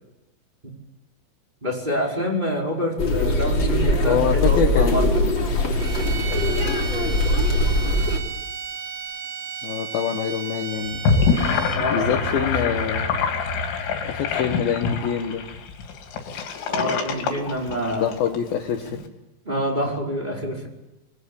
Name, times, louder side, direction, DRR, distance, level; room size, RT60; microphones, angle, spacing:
voice 1, 1.6-5.3 11.7-12.8 16.7-18.1 19.4-20.7, equal, 10° right, -2 dB, 4.9 m, -27 dB
sound 1, 3.0-8.2, left 1 dB, 30° left, 3.3 m, -21 dB
voice 2, 4.0-5.3 9.6-11.1 11.9-13.2 14.0-15.4 17.9-19.0, left 9 dB, 65° left, 6 dB, 2.7 m, -25 dB
sound 2, 5.8-12.0, right 6 dB, 75° right, 4.2 m, -34 dB
Gurgling / Sink (filling or washing), 10.9-18.4, left 5 dB, 85° left, 5.4 m, -25 dB
26.0 x 23.0 x 8.9 m, 0.96 s
omnidirectional pair, 5.5 m